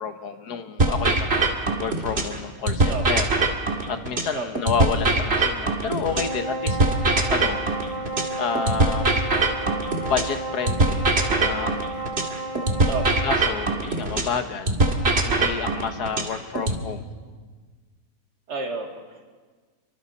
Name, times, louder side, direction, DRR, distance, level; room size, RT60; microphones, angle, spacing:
voice 1, 0.0-3.3 3.9-7.7 8.4-9.2 10.1-11.1 11.4-11.9 13.2-14.8 15.2-17.1, left 6 dB, 70° left, 8 dB, 1.7 m, -30 dB
sound 1, 0.8-2.4 2.7-6.4 6.7-10.4 10.7-14.4 14.7-16.8, right 2 dB, 35° right, 2.2 m, -22 dB
sound 2, 6.0-13.4, right 2 dB, 30° left, 5.2 m, -32 dB
voice 2, 18.5-19.2, right 4 dB, 70° right, 2 dB, 2.8 m, -30 dB
30.0 x 24.0 x 4.2 m, 1.4 s
omnidirectional pair, 1.8 m